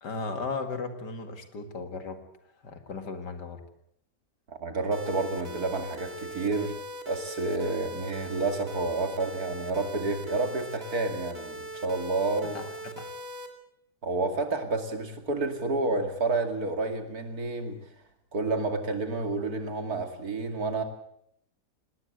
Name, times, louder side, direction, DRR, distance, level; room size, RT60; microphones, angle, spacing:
voice 1, 0.0-2.2 2.6-3.6 12.5-13.1, left 4 dB, 90° left, 7 dB, 2.8 m, -36 dB
voice 2, 4.5-6.8 7.1-12.6 14.0-17.8 18.3-20.8, right 3 dB, 65° right, 6 dB, 3.0 m, -30 dB
sound 1, 4.9-13.5, equal, 35° right, 2.8 m, -40 dB
19.5 x 19.0 x 8.0 m, 0.73 s
omnidirectional pair, 1.8 m